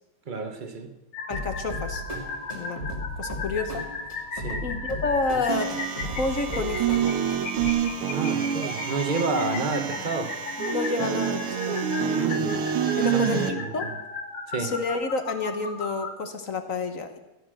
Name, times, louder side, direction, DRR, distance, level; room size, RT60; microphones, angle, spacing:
voice 1, 0.3-0.9 4.3-4.6 8.1-10.3 12.1-12.7 13.1-13.9 14.5-14.7, right 3 dB, 30° right, 7 dB, 0.9 m, -30 dB
sound 1, 1.1-16.1, left 3 dB, 65° left, 2.7 m, -36 dB
voice 2, 1.3-2.0 2.5-2.8 3.2-3.8 4.6-5.7 6.2-6.9 10.6-11.9 13.0-13.4 13.7-13.9 14.6-17.2, left 3 dB, 45° left, 7 dB, 1.2 m, -29 dB
sound 2, 1.3-7.7, left 1 dB, 15° left, 2.7 m, -36 dB
sound 3, 5.5-13.5, right 8 dB, 85° right, 2.0 m, -27 dB
16.0 x 10.5 x 6.4 m, 1.0 s
omnidirectional pair, 2.4 m